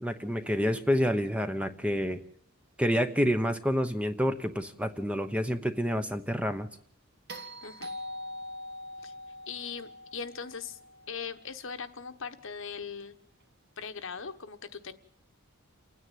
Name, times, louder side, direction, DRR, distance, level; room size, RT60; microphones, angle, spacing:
voice 1, 0.0-2.2 2.8-6.7, equal, 5° right, 8 dB, 0.9 m, -28 dB
sound 1, 7.3-11.6 13.8-13.9, left 1 dB, 50° right, 2.0 m, -43 dB
voice 2, 9.5-10.8 11.1-13.2 13.8-14.9, left 6 dB, 60° left, 9 dB, 1.2 m, -40 dB
29.0 x 9.8 x 9.3 m, 0.63 s
head